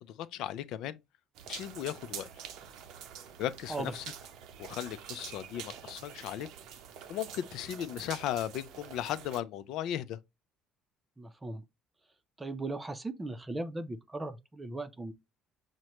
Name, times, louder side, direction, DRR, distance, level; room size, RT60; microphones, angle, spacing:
voice 1, 0.0-1.0 1.5-2.3 3.4-4.0 4.6-6.5 7.1-10.2, left 11 dB, 75° left, 0.4 m, -36 dB
sound 1, 1.3-9.4, right 8 dB, 75° right, 0.6 m, -46 dB
voice 2, 11.2-11.6 12.4-15.1, right 2 dB, 15° right, 0.5 m, -38 dB
6.1 x 2.1 x 2.9 m
cardioid pair, 110°, 0 cm